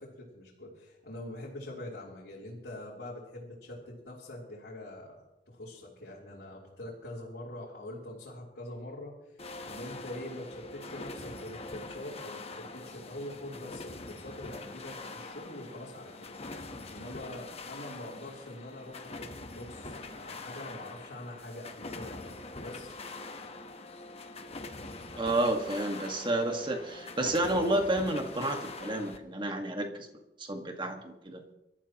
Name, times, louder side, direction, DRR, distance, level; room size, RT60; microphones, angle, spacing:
voice 1, 0.0-16.3 16.9-22.3 22.6-22.9, left 1 dB, 70° left, -7 dB, 3.6 m, -44 dB
sound 1, 9.4-29.2, left 2 dB, 35° left, 1.2 m, -44 dB
voice 2, 25.1-30.1 30.4-31.4, right 1 dB, 30° right, 4 dB, 1.8 m, -30 dB
25.0 x 13.5 x 3.0 m, 0.96 s
head